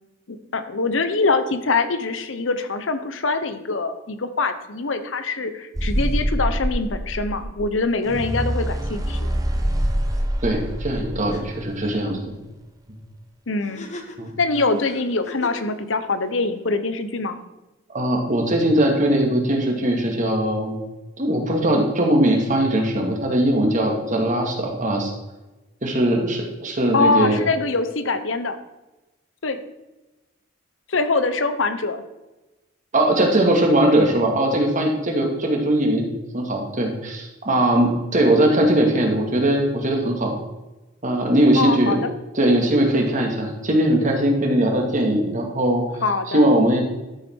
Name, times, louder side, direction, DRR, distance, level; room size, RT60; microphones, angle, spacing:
voice 1, 0.3-9.3 13.5-13.8 14.4-17.4 26.9-28.6 29.4-29.6 30.9-32.0 41.5-42.1 46.0-46.5, left 3 dB, 85° left, 10 dB, 1.0 m, -23 dB
sound 1, 5.7-11.8, equal, 20° right, 1.2 m, -25 dB
voice 2, 10.4-12.4 14.2-14.3 17.9-20.8 21.2-25.1 25.8-27.4 32.9-36.1 36.3-40.4 41.0-41.9 42.3-46.8, right 1 dB, 40° right, 2 dB, 2.1 m, -20 dB
sound 2, 10.9-11.0 11.3-11.4 13.6-15.7, left 2 dB, 40° left, 1.1 m, -38 dB
12.5 x 7.2 x 4.7 m, 1.0 s
head